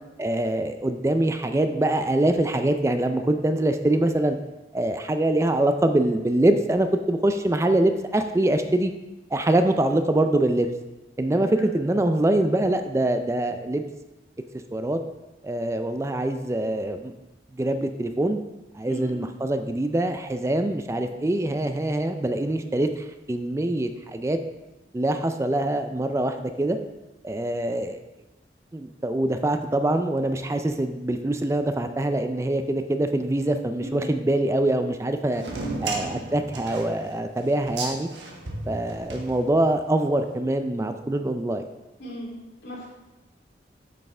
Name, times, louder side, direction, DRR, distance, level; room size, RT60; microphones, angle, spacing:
voice 1, 0.2-4.4 4.7-8.9 9.3-10.7 11.2-13.8 14.7-15.0 15.4-17.1 17.5-18.4 18.8-24.4 24.9-26.8 27.2-28.0 28.7-35.4 35.8-38.1 38.7-41.6, right 1 dB, 15° right, 8 dB, 0.3 m, -24 dB
voice 2, 11.2-11.7 18.9-19.2 33.8-34.1 35.3-35.8 42.0-42.9, right 1 dB, 85° left, -5 dB, 2.7 m, -37 dB
sound 1, 35.4-39.9, right 2 dB, 85° right, 1.3 m, -35 dB
8.4 x 6.5 x 3.3 m, 1.0 s
head